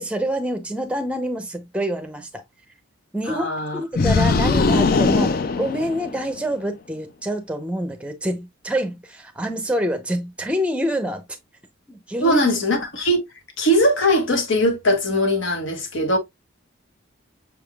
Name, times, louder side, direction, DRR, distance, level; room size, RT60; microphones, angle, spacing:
voice 1, 0.0-2.4 3.1-3.5 3.7-11.2 11.9-12.4, equal, 5° right, 0.6 m, -26 dB
voice 2, 3.3-3.8 12.2-13.2 13.6-16.2, equal, 65° left, 1.2 m, -20 dB
Awake The Beast., 3.9-6.4, left 4 dB, 45° left, 0.4 m, -20 dB
6.2 x 3.5 x 2.3 m
head